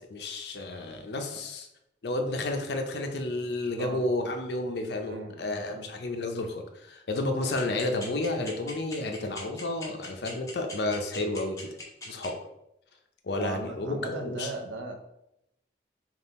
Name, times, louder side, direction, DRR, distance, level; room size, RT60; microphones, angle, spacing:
voice 1, 0.0-1.7 2.0-11.7 12.0-12.3 13.2-14.5, left 2 dB, 60° left, 4 dB, 0.6 m, -31 dB
voice 2, 5.0-5.9 13.4-15.0, right 3 dB, 90° right, 3 dB, 0.7 m, -37 dB
sound 1, 7.6-12.3, left 3 dB, 15° left, 0.9 m, -40 dB
3.6 x 2.4 x 4.1 m, 0.83 s
head